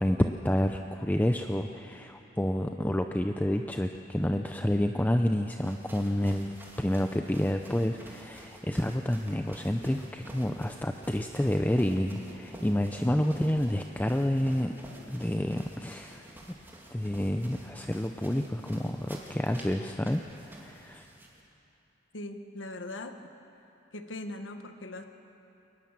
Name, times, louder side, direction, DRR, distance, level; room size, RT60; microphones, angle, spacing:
voice 1, 0.0-14.7 15.1-16.6 16.9-20.2 20.5-21.1, left 1 dB, 10° left, 5 dB, 0.5 m, -29 dB
sound 1, 5.4-21.4, right 1 dB, 10° right, 2.7 m, -49 dB
voice 2, 22.1-23.2 23.9-25.0, left 2 dB, 75° left, 7 dB, 1.3 m, -40 dB
23.0 x 19.5 x 7.4 m, 2.9 s
head